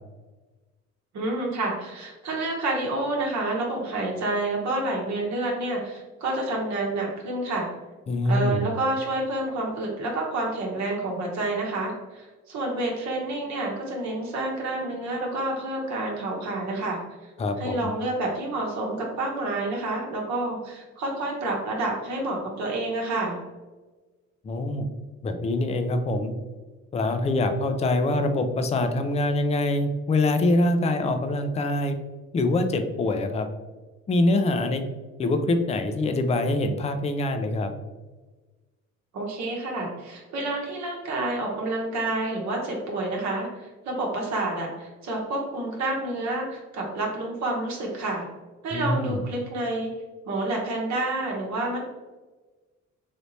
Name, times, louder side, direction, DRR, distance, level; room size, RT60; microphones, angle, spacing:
voice 1, 1.1-7.7 8.2-17.0 17.6-23.4 39.1-48.3 48.6-49.9 50.3-51.8, right 2 dB, 65° right, -2 dB, 1.0 m, -29 dB
voice 2, 8.1-8.7 17.4-17.9 24.4-24.9 25.2-26.3 26.9-32.0 32.3-33.5 34.1-34.9 35.2-37.7 48.7-49.2, left 2 dB, 20° left, 7 dB, 0.4 m, -24 dB
3.3 x 2.9 x 2.7 m, 1.2 s
supercardioid pair, 80°, 30 cm